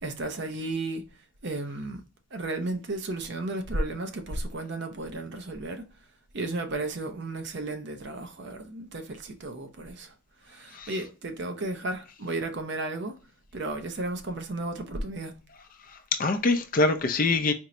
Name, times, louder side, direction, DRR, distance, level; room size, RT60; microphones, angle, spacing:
voice 1, 0.0-1.1 1.4-2.0 2.3-5.9 6.3-10.1 10.4-13.2 13.5-15.4, right 2 dB, 50° right, 0.5 m, -33 dB
voice 2, 15.9-17.5, left 3 dB, 40° left, 0.4 m, -24 dB
4.4 x 2.1 x 3.7 m
head